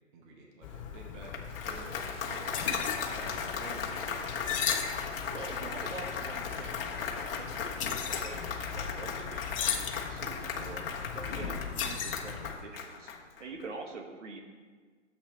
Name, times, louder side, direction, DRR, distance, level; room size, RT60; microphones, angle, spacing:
voice 1, 0.1-4.4, right 3 dB, 40° right, 0 dB, 1.7 m, -50 dB
sound 1, 0.6-12.6, left 7 dB, 25° left, 0.7 m, -37 dB
Applause, 1.1-13.6, left 6 dB, 45° left, 1.5 m, -37 dB
voice 2, 5.3-10.8 11.1-14.4, right 3 dB, 65° right, 2 dB, 1.9 m, -45 dB
14.0 x 8.2 x 3.3 m, 1.5 s
hypercardioid pair, 145°, 38 cm